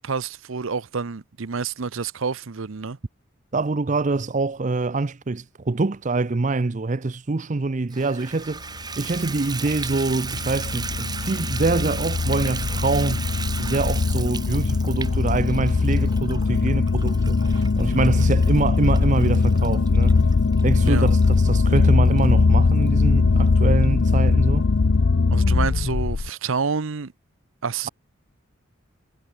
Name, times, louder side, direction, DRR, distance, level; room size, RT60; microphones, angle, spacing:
voice 1, 0.0-3.0 20.8-21.1 25.3-27.1 27.6-27.9, right 5 dB, 75° right, 0.7 m, -28 dB
voice 2, 3.5-8.7 9.0-13.3 13.6-20.3 20.6-24.7, right 3 dB, 35° right, 0.6 m, -25 dB
Water tap faucet / Bathtub (filling or washing), 7.9-22.3 22.9-23.0 23.5-23.6 23.8-23.9, right 5 dB, 20° right, 5.8 m, -36 dB
sound 1, 8.8-26.3, left 4 dB, 60° left, 0.6 m, -20 dB
head